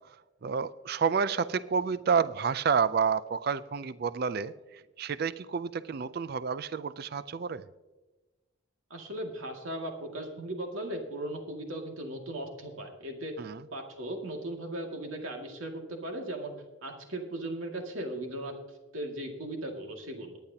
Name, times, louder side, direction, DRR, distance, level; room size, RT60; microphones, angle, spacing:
voice 1, 0.4-7.6 13.4-13.6, right 6 dB, 45° right, 0.4 m, -29 dB
voice 2, 8.9-16.5 16.8-18.5 18.9-20.4, right 1 dB, 75° right, 2.2 m, -37 dB
19.5 x 9.9 x 2.8 m
head